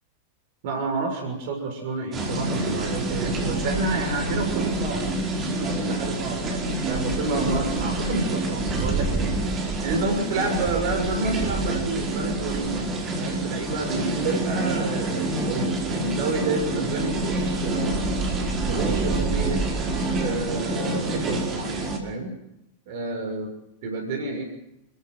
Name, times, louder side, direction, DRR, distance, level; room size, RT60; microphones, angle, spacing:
voice 1, 0.6-5.1 5.4-12.9 13.2-18.1 18.6-19.6 20.2-22.3 22.9-23.5 23.8-24.4, right 3 dB, 50° right, 4 dB, 6.4 m, -29 dB
sound 1, 2.1-22.0, right 2 dB, 25° right, 5.0 m, -27 dB
29.0 x 15.0 x 7.9 m, 0.86 s
figure-of-eight pair, 90°, 0 cm